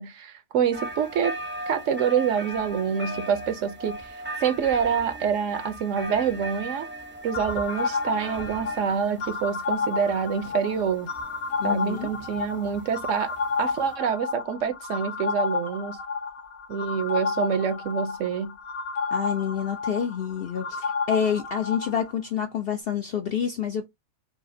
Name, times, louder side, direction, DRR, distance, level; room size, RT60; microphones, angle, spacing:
voice 1, 0.0-1.3 1.7-6.9 7.2-11.1 11.6-16.0 16.7-18.5, right 7 dB, 65° right, 0.9 m, -26 dB
sound 1, 0.7-13.9, right 1 dB, 10° right, 0.5 m, -39 dB
sound 2, 7.3-22.1, left 4 dB, 90° left, 1.3 m, -31 dB
voice 2, 11.6-12.1 19.1-23.9, left 8 dB, 65° left, 0.6 m, -28 dB
4.8 x 2.5 x 2.6 m
omnidirectional pair, 1.5 m